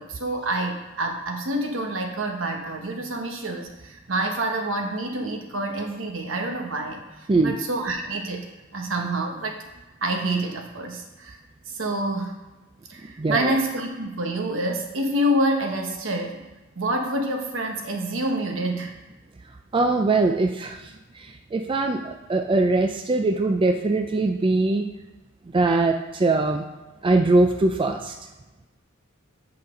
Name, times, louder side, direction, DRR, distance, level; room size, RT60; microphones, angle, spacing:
voice 1, 0.0-8.4 8.7-9.6 10.0-11.4 11.7-12.3 12.9-16.4 16.8-18.9, right 1 dB, 70° right, 2 dB, 1.1 m, -27 dB
voice 2, 13.2-13.5 19.7-24.9 25.5-26.7 27.0-28.1, right 2 dB, 25° right, 4 dB, 0.4 m, -22 dB
8.0 x 5.6 x 3.7 m, 1.1 s
head